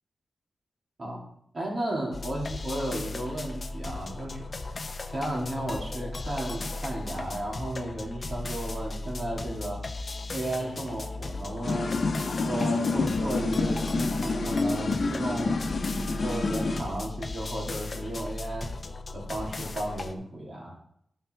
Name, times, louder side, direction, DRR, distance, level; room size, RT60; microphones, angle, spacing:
voice 1, 1.5-4.4 5.1-9.8 10.3-11.9 12.5-18.7 19.1-20.8, right 1 dB, 45° right, -3 dB, 3.3 m, -34 dB
sound 1, 2.1-20.1, left 2 dB, 35° left, 0.7 m, -36 dB
sound 2, 11.6-16.8, left 3 dB, 55° left, 1.1 m, -28 dB
12.5 x 5.9 x 4.8 m, 0.70 s
wide cardioid pair, 145°, 0 cm